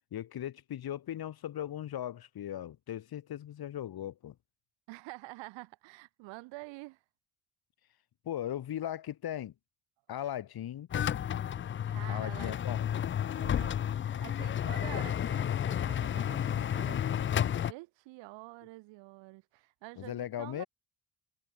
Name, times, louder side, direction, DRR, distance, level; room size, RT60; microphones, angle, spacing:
voice 1, 0.1-4.4 8.2-9.5 10.1-10.9 12.1-12.9 20.0-20.7, left 11 dB, 55° left, 2.3 m, -38 dB
voice 2, 4.9-7.0 11.9-20.7, right 23 dB, 75° right, 2.3 m, -48 dB
sound 1, 10.9-17.7, left 9 dB, 30° left, 0.5 m, -31 dB
hypercardioid pair, 55°, 44 cm